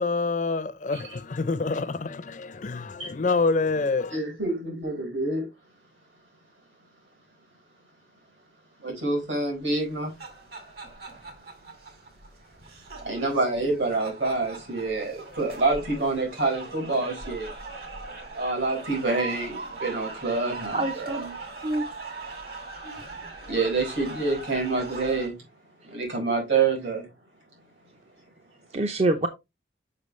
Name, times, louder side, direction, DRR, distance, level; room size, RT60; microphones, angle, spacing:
voice 1, 0.0-4.2, left 3 dB, 40° left, 0.5 m, -27 dB
voice 2, 4.1-5.4 8.8-10.1 13.0-17.5 18.3-21.3 22.8-23.0 23.5-25.3 25.9-27.1, right 3 dB, 70° right, 4.8 m, -27 dB
sound 1, 9.8-25.3, right 3 dB, 50° right, 2.1 m, -40 dB
voice 3, 20.7-21.4 21.6-21.8 28.7-29.3, right 2 dB, 35° right, 0.5 m, -26 dB
6.7 x 5.5 x 3.1 m
head